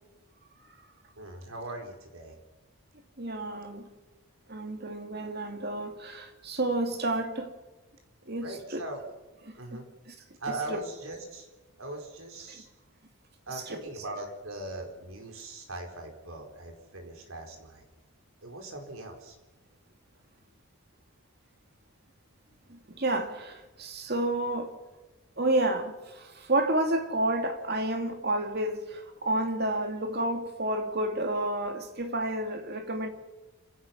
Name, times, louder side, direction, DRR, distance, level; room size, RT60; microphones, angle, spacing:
voice 1, 1.2-2.4 8.4-9.0 9.6-9.9 10.4-11.5 11.8-12.7 13.5-17.8 18.4-19.4, right 2 dB, 70° right, 4.6 m, -40 dB
voice 2, 3.2-3.9 4.5-7.5 8.3-8.8 9.5-10.1 10.5-10.8 12.5-12.6 13.7-13.8 22.7-24.7 25.4-33.1, right 1 dB, 45° right, 2.5 m, -30 dB
27.0 x 16.5 x 6.0 m
head